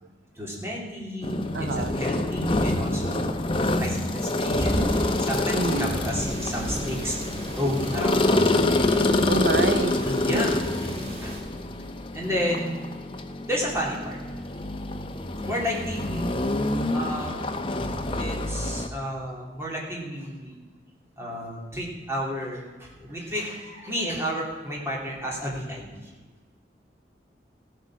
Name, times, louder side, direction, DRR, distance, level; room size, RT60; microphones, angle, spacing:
voice 1, 0.3-1.4 1.7-3.4 3.7-7.2 7.5-9.3 10.0-10.5 10.8-10.9 11.2-11.4 12.1-12.8 13.5-14.2 15.5-16.2 16.9-17.5 18.2-20.6 21.2-26.1, equal, 15° right, -3 dB, 3.0 m, -31 dB
sound 1, 1.2-18.9, left 2 dB, 30° left, 0.8 m, -27 dB
voice 2, 1.5-1.9 5.5-6.0 9.3-10.0 10.3-10.5, right 3 dB, 70° right, 9 dB, 0.5 m, -27 dB
sound 2, 4.5-11.4, equal, 35° right, 2.8 m, -33 dB
15.5 x 8.1 x 6.2 m, 1.3 s
head